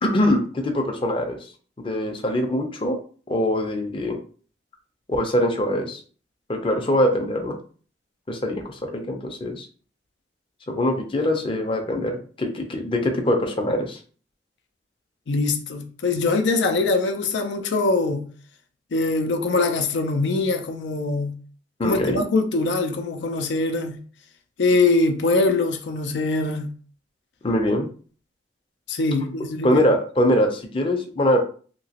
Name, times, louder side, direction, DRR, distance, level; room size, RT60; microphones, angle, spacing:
voice 1, 0.0-1.4 1.8-3.0 3.3-4.2 5.1-6.0 6.5-7.6 8.3-9.7 10.7-14.0 21.8-22.2 27.4-27.9 29.6-31.4, left 1 dB, 30° left, 0.5 m, -23 dB
voice 2, 15.3-18.3 18.9-21.4 21.8-24.0 24.6-26.7 28.9-29.8, left 3 dB, 80° left, 0.5 m, -23 dB
2.9 x 2.9 x 2.8 m
head